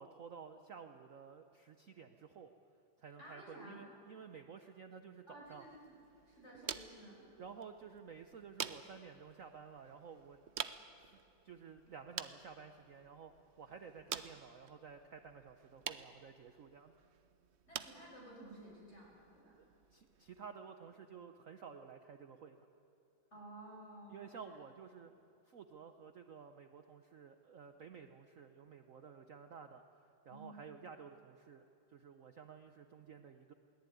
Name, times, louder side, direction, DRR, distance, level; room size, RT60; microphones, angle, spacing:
voice 1, 0.0-2.5 3.0-5.7 7.4-10.4 11.0-11.2 11.4-16.9 19.5-19.7 19.9-22.6 24.1-25.1 25.5-29.8 30.2-33.5, right 6 dB, 55° right, 7 dB, 1.0 m, -53 dB
voice 2, 3.2-3.9 5.3-5.9 6.3-7.3 17.6-19.5 23.3-24.5 30.3-30.6, right 1 dB, 35° left, -3 dB, 6.1 m, -54 dB
sound 1, 5.4-20.5, right 8 dB, 75° right, 0.6 m, -49 dB
22.0 x 19.0 x 9.2 m, 2.7 s
omnidirectional pair, 2.2 m